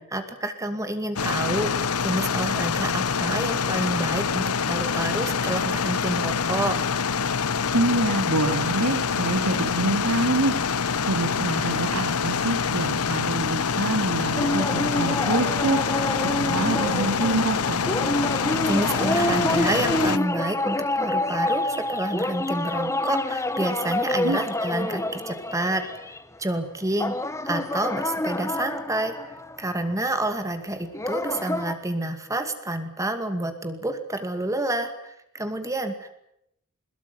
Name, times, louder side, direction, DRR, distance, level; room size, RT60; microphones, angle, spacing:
voice 1, 0.1-6.8 18.7-27.2 27.4-36.1, right 1 dB, 15° right, 8 dB, 2.4 m, -29 dB
sound 1, 1.2-20.2, left 6 dB, 80° left, 0.9 m, -26 dB
voice 2, 7.7-10.5 11.0-15.8 16.2-17.8 24.2-24.4, right 2 dB, 75° right, 4 dB, 2.7 m, -26 dB
sound 2, 14.4-26.2 27.0-30.0 30.9-31.7, left 1 dB, 15° left, 1.4 m, -27 dB
22.5 x 21.5 x 9.5 m, 0.77 s
head